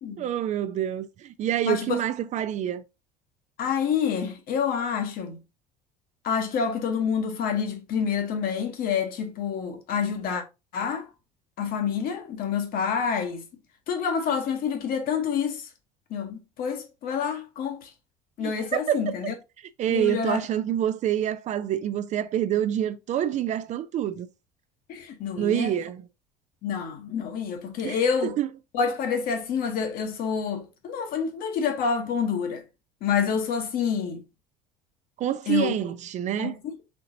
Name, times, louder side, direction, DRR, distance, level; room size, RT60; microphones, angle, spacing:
voice 1, 0.2-2.8 18.4-19.3 19.8-24.3 25.4-26.0 27.8-28.5 35.2-36.6, right 11 dB, 40° right, 0.4 m, -27 dB
voice 2, 1.6-2.0 3.6-5.4 6.2-10.4 10.7-11.1 11.6-13.4 13.9-15.7 16.1-17.9 18.4-19.3 19.9-20.4 24.9-25.7 26.6-28.3 28.7-32.6 33.0-34.2 35.5-35.7 36.4-36.6, left 6 dB, 50° left, 1.0 m, -27 dB
4.5 x 3.7 x 2.6 m
figure-of-eight pair, 65°, 20 cm